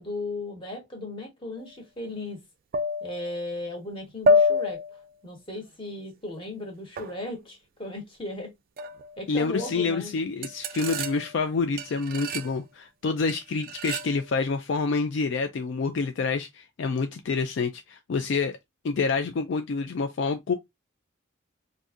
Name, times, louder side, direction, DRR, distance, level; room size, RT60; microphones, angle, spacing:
voice 1, 0.0-2.4 3.0-4.8 5.2-8.5 9.2-10.1, left 2 dB, 25° left, 1.2 m, -36 dB
sound 1, 1.6-1.7 2.7-3.4 4.2-5.1 7.0-7.2 8.8-9.2 9.6-9.9 10.4-11.4 11.8-12.5 13.3-14.2, left 2 dB, 45° right, 0.3 m, -27 dB
voice 2, 9.3-18.6 18.8-20.5, left 4 dB, 60° left, 0.4 m, -27 dB
3.9 x 2.6 x 2.4 m
head